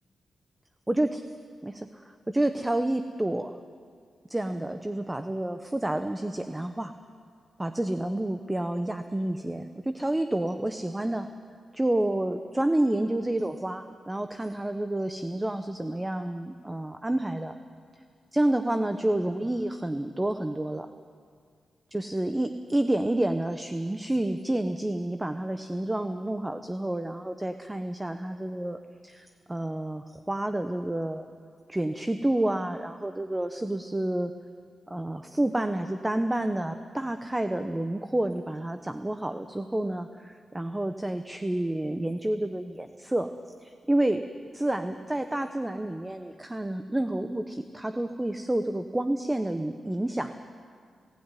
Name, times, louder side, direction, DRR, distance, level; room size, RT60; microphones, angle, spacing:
voice 1, 0.9-1.2 1.6-3.6 4.3-6.9 7.6-11.3 11.7-17.6 18.3-20.9 21.9-31.3 31.7-34.3 34.9-43.3 43.6-44.2 44.5-50.3, right 1 dB, 15° right, 8 dB, 0.9 m, -29 dB
18.0 x 16.0 x 9.8 m, 2.1 s
cardioid pair, 75°, 0 cm